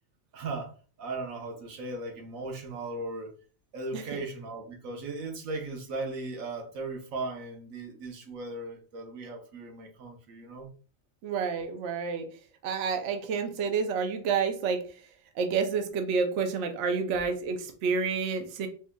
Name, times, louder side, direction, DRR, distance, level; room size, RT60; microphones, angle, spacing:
voice 1, 0.3-3.3 3.7-10.7, right 2 dB, 90° right, 3 dB, 1.2 m, -37 dB
voice 2, 11.2-12.3 12.6-14.8 15.4-18.7, right 5 dB, 70° right, 5 dB, 0.9 m, -29 dB
4.4 x 2.8 x 2.2 m, 0.40 s
omnidirectional pair, 1.4 m